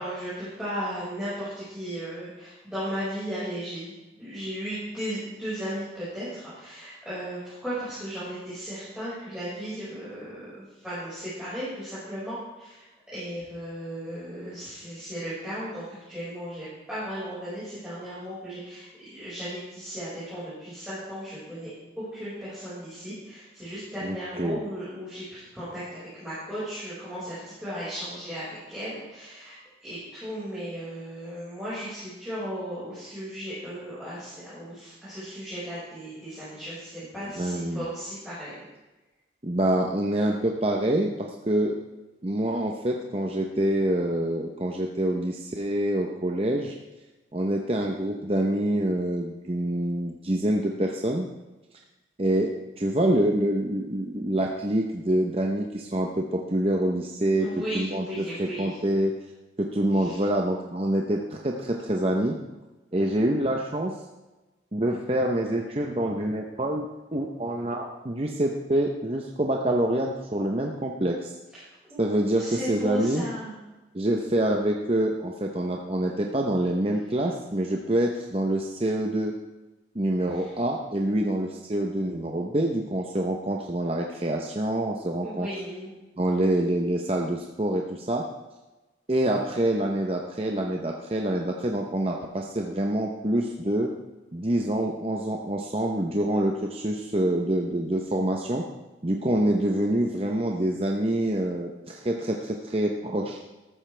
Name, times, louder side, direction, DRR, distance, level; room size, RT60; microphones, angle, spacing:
voice 1, 0.0-12.8 13.1-21.7 22.0-38.6 57.4-58.8 59.9-60.2 71.5-72.1 72.4-73.6 80.3-80.5 85.2-85.9, equal, 5° right, -13 dB, 5.3 m, -36 dB
voice 2, 24.0-24.6 37.4-37.9 39.4-41.7 42.2-46.8 47.3-51.3 52.2-57.5 57.7-59.1 59.6-62.3 62.9-63.9 64.7-71.3 72.0-73.3 73.9-79.4 79.9-85.5 86.2-88.2 89.1-93.9 94.3-98.7 99.0-103.4, right 1 dB, 30° right, 1 dB, 0.8 m, -26 dB
13.5 x 13.5 x 3.4 m, 1.1 s
head